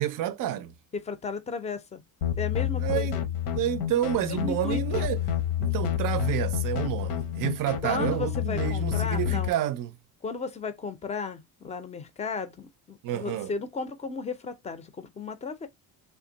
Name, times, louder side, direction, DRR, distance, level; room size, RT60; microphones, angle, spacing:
voice 1, 0.0-0.7 2.8-3.2 3.5-5.2 5.6-10.0 13.0-13.5, right 12 dB, 60° right, 0.5 m, -29 dB
voice 2, 0.9-2.0 2.4-3.2 4.3-5.0 7.8-9.6 10.2-15.7, left 4 dB, 20° left, 0.5 m, -34 dB
sound 1, 2.2-9.5, left 10 dB, 85° left, 0.8 m, -29 dB
3.5 x 2.1 x 3.9 m
cardioid pair, 165°, 38 cm